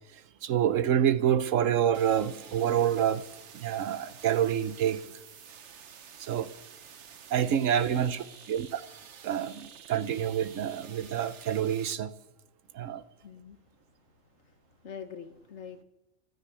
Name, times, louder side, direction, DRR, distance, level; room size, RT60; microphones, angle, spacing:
voice 1, 0.1-3.2 3.5-5.0 6.2-6.5 7.3-8.2 8.5-8.8 9.2-12.1 12.7-13.0, right 9 dB, 90° right, 1.2 m, -27 dB
sound 1, 1.9-11.9, right 7 dB, 65° right, 1.2 m, -50 dB
voice 2, 7.4-8.1 13.2-13.6 14.4-15.8, left 6 dB, 65° left, 1.5 m, -45 dB
15.0 x 12.0 x 6.9 m
omnidirectional pair, 1.3 m